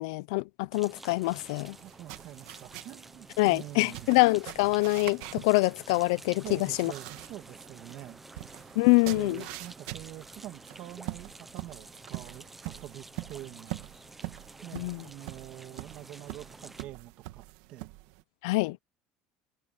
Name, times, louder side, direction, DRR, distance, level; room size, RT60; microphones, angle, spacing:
voice 1, 0.0-1.8 3.4-6.9 8.8-9.4 14.7-15.0 18.4-18.8, left 24 dB, 85° left, 0.6 m, -25 dB
sound 1, 0.7-16.8, right 2 dB, 5° right, 1.0 m, -50 dB
sound 2, 1.3-18.2, right 19 dB, 70° right, 1.7 m, -44 dB
voice 2, 1.8-4.1 6.4-8.2 9.0-13.9 14.6-17.4 17.7-17.9, right 14 dB, 45° right, 2.5 m, -45 dB
cardioid pair, 180°, 3 cm